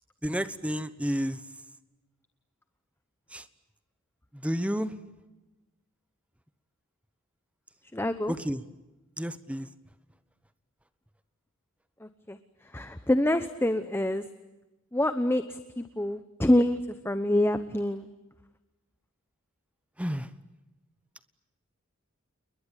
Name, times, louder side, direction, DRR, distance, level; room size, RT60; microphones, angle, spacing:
voice 1, 0.2-1.4 3.3-3.5 4.3-5.0 8.3-8.6 9.2-9.7 20.0-20.3, equal, 5° right, 12 dB, 1.2 m, -31 dB
voice 2, 7.9-8.3 12.0-14.2 14.9-16.8 17.0-18.1, left 1 dB, 10° left, 10 dB, 0.9 m, -26 dB
29.5 x 22.0 x 9.0 m, 1.1 s
head